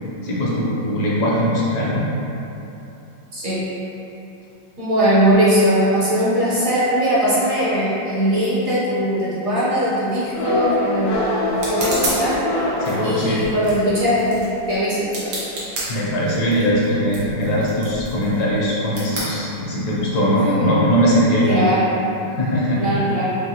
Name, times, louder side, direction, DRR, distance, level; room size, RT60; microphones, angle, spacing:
voice 1, 0.2-2.1 12.8-13.4 15.9-21.7 22.2-23.0, equal, 70° left, -6 dB, 1.2 m, -20 dB
voice 2, 4.8-12.4 13.0-15.4 20.3-20.7 21.5-21.9 22.8-23.3, equal, 55° right, -10 dB, 1.1 m, -20 dB
sound 1, 10.3-13.9, left 1 dB, 90° left, 1.5 m, -24 dB
sound 2, 10.3-20.1, right 2 dB, 80° right, 1.7 m, -33 dB
6.3 x 2.1 x 2.8 m, 2.9 s
omnidirectional pair, 2.0 m